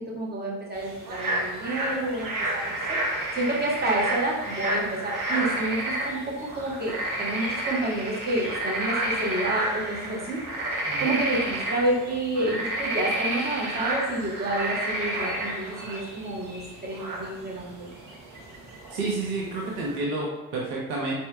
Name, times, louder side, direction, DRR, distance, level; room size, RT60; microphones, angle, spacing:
voice 1, 0.1-3.0 3.3-6.9 7.2-10.4 11.0-17.9, right 1 dB, 20° right, -4 dB, 1.4 m, -29 dB
sound 1, 0.7-20.0, right 1 dB, 50° right, 1.2 m, -31 dB
voice 2, 18.9-21.1, right 2 dB, 75° right, -3 dB, 0.8 m, -30 dB
4.2 x 3.0 x 3.4 m, 1.0 s
figure-of-eight pair, 40°, 43 cm